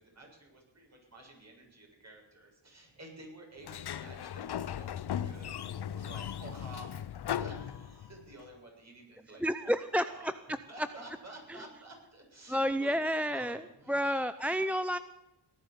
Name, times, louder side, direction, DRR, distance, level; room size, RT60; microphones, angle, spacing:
voice 1, 0.0-6.9 7.3-9.7 10.1-10.3 10.7-14.2 14.7-14.9, right 1 dB, 35° right, 0 dB, 7.1 m, -51 dB
Sliding door, 3.6-8.3, left 10 dB, 60° left, 0.8 m, -37 dB
voice 2, 9.4-10.6 11.5-11.6 12.5-15.0, equal, 5° right, 12 dB, 0.5 m, -31 dB
18.0 x 11.0 x 6.9 m, 0.90 s
wide cardioid pair, 105°, 45 cm